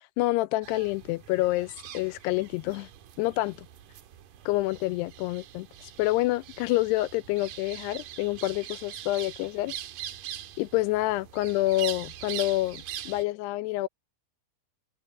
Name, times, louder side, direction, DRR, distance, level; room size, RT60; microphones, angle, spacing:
voice 1, 0.2-2.9 3.2-3.6 4.5-5.7 6.0-9.8 10.6-13.9, left 18 dB, 80° left, 2.5 m, -27 dB
sound 1, 0.6-13.2, right 11 dB, 60° right, 2.5 m, -42 dB
omnidirectional pair, 5.0 m